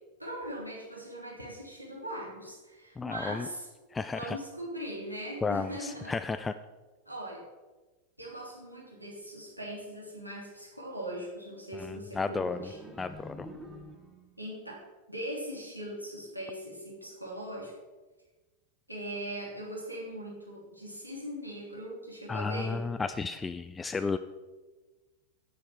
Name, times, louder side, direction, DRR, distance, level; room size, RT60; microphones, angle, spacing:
voice 1, 0.2-3.7 4.1-6.2 7.0-7.4 8.2-12.8 14.4-17.7 18.9-22.8, right 1 dB, 90° right, -4 dB, 3.1 m, -40 dB
voice 2, 3.0-3.5 3.9-4.4 5.4-6.5 11.7-12.7 13.0-13.5 22.3-24.2, left 4 dB, 15° left, 10 dB, 0.4 m, -33 dB
sound 1, 12.3-14.4, equal, 5° right, 1.4 m, -46 dB
9.9 x 9.7 x 4.4 m, 1.2 s
figure-of-eight pair, 90°, 0 cm